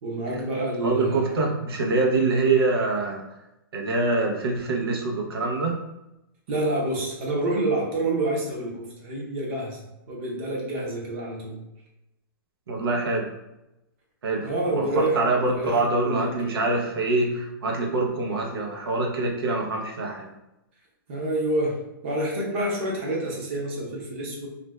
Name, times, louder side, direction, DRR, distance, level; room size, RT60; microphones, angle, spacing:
voice 1, 0.0-1.5 6.5-9.8 10.1-11.6 14.4-16.6 21.1-21.8 22.0-24.5, right 1 dB, 30° right, -2 dB, 0.6 m, -28 dB
voice 2, 0.8-3.2 3.7-5.8 12.7-13.3 14.2-14.5 14.7-20.3, right 3 dB, 90° right, 0 dB, 0.8 m, -25 dB
2.5 x 2.2 x 3.1 m, 0.92 s
hypercardioid pair, 170°, 12 cm